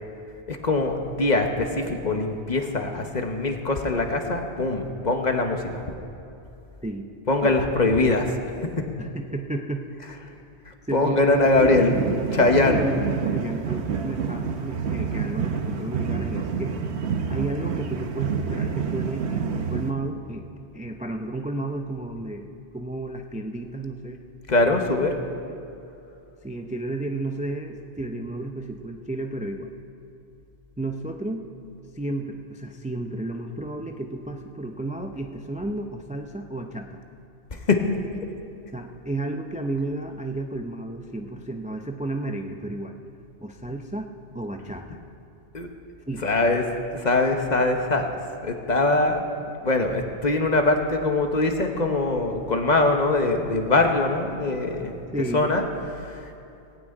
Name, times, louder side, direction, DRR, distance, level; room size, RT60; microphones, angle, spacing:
voice 1, 0.5-5.8 7.3-8.3 10.7-11.9 12.3-12.9 24.5-25.1 37.7-38.0 45.5-45.7 46.2-46.6 46.9-48.1 48.4-49.2 49.6-54.9 55.3-55.6 56.1-56.3, left 2 dB, 40° left, 4 dB, 1.2 m, -22 dB
voice 2, 7.4-7.9 9.0-9.9 10.9-16.8 17.3-20.5 20.7-24.2 25.5-25.6 26.4-29.7 30.8-31.4 31.9-37.0 38.7-42.9 43.4-45.0 46.1-46.3 55.1-55.5, right 2 dB, 10° right, 4 dB, 0.4 m, -32 dB
sound 1, 11.5-19.9, right 6 dB, 75° right, 1.1 m, -28 dB
18.0 x 6.2 x 8.9 m, 2.8 s
omnidirectional pair, 1.1 m